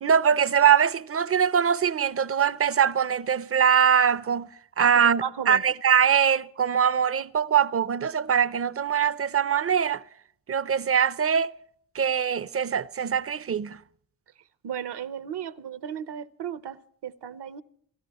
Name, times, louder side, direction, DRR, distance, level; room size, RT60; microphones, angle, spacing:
voice 1, 0.0-4.5 4.8-10.0 10.5-11.5 11.9-13.8, right 7 dB, 35° right, 0.6 m, -22 dB
voice 2, 5.2-5.6 14.6-17.6, right 9 dB, 65° right, 0.9 m, -34 dB
29.0 x 13.5 x 3.0 m
cardioid pair, 65°, 43 cm